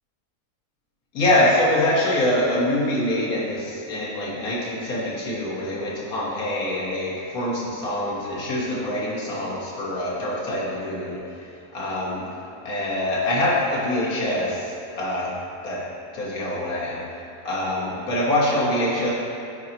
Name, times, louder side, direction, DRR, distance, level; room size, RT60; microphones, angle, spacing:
voice 1, 1.1-12.3 12.6-15.3 15.6-15.8 16.1-17.0 17.4-19.1, left 1 dB, 70° left, -6 dB, 1.8 m, -24 dB
10.5 x 4.2 x 2.9 m, 2.8 s
omnidirectional pair, 1.7 m